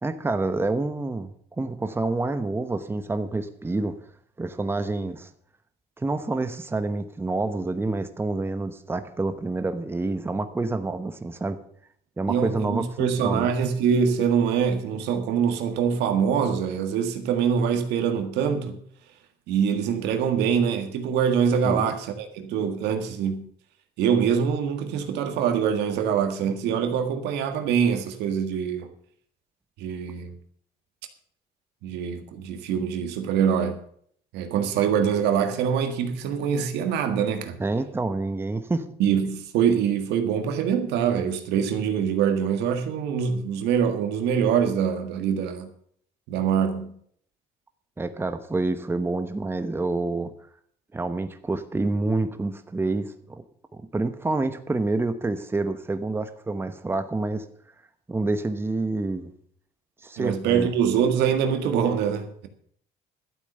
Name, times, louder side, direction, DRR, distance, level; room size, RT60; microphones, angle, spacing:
voice 1, 0.0-4.0 4.4-5.3 6.0-11.6 12.2-13.5 21.6-21.9 37.6-38.9 48.0-50.3 50.9-53.4 53.7-57.4 58.1-59.3 60.0-60.7, right 2 dB, 15° right, 0.9 m, -28 dB
voice 2, 12.3-18.8 19.5-23.5 24.0-28.9 29.8-30.3 31.8-33.8 34.3-37.6 39.0-45.7 46.3-47.0 60.2-62.5, right 7 dB, 85° right, 1.7 m, -24 dB
12.0 x 8.3 x 6.6 m
cardioid pair, 110°, 17 cm